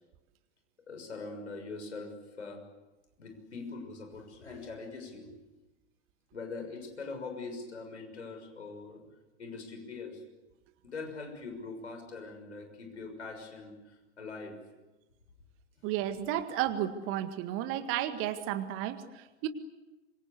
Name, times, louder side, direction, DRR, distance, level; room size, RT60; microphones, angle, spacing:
voice 1, 0.9-2.6 3.2-5.4 6.3-9.0 9.4-10.2 10.8-14.6, left 3 dB, 75° left, 4 dB, 6.4 m, -42 dB
voice 2, 15.8-19.5, right 12 dB, 40° right, 9 dB, 1.9 m, -33 dB
26.0 x 24.5 x 8.3 m, 1.1 s
figure-of-eight pair, 90°, 35 cm